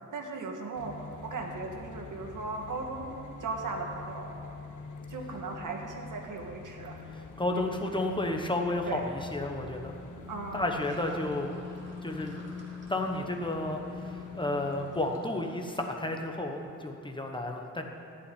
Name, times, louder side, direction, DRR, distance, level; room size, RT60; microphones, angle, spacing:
voice 1, 0.1-4.3 5.1-7.0 7.5-8.1 8.9-9.1 10.3-10.7 11.1-11.2, right 3 dB, 75° right, 2 dB, 1.7 m, -38 dB
sound 1, 0.7-15.1, left 3 dB, 70° left, 1.0 m, -44 dB
voice 2, 7.1-10.0 10.5-11.6 12.0-12.4 12.9-17.8, left 2 dB, 15° left, 2 dB, 1.0 m, -32 dB
Sink (filling or washing), 10.6-16.9, equal, 35° right, 2.1 m, -55 dB
14.5 x 5.7 x 9.9 m, 2.9 s
wide cardioid pair, 150°, 31 cm